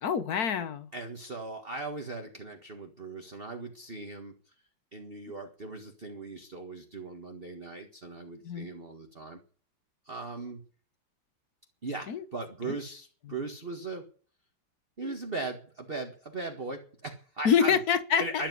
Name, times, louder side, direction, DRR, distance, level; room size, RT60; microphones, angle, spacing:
voice 1, 0.0-0.9 8.4-8.7 12.1-12.2 12.6-12.8 17.4-18.4, left 7 dB, 55° left, 1.4 m, -26 dB
voice 2, 0.9-4.3 4.9-9.4 10.1-10.6 11.8-14.0 15.0-17.8 18.2-18.5, right 3 dB, 30° right, 1.9 m, -38 dB
13.0 x 11.5 x 9.6 m
omnidirectional pair, 2.2 m